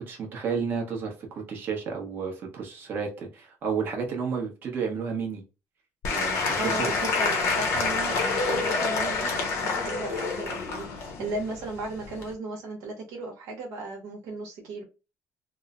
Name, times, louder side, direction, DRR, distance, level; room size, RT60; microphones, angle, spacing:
voice 1, 0.1-5.4 6.1-6.8, right 6 dB, 45° right, 0.9 m, -32 dB
Applause / Crowd, 6.0-12.3, left 4 dB, 65° left, 0.7 m, -28 dB
voice 2, 6.6-14.8, right 2 dB, 75° right, 1.0 m, -36 dB
3.1 x 2.0 x 2.4 m
cardioid pair, 160°, 5 cm